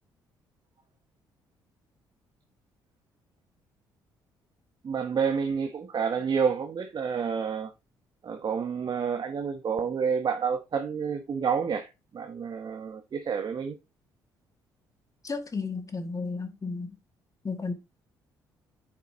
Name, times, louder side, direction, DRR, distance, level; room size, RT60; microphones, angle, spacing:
voice 1, 4.8-7.7 8.2-13.8, right 6 dB, 45° right, 1.2 m, -29 dB
voice 2, 15.2-17.0 17.4-17.7, left 4 dB, 30° left, 2.2 m, -33 dB
9.4 x 7.2 x 2.9 m
hypercardioid pair, 45°, 10 cm